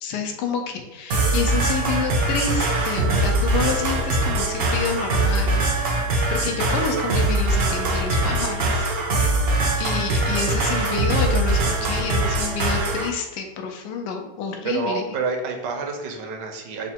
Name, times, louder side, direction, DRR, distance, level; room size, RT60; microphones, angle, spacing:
voice 1, 0.0-5.6 6.3-8.9 9.8-15.1, left 6 dB, 80° left, 3 dB, 1.2 m, -28 dB
sound 1, 1.1-13.1, right 2 dB, 70° right, 0.5 m, -22 dB
voice 2, 14.6-16.9, right 4 dB, 85° right, 3 dB, 1.3 m, -28 dB
3.8 x 2.1 x 4.3 m, 0.99 s
omnidirectional pair, 1.9 m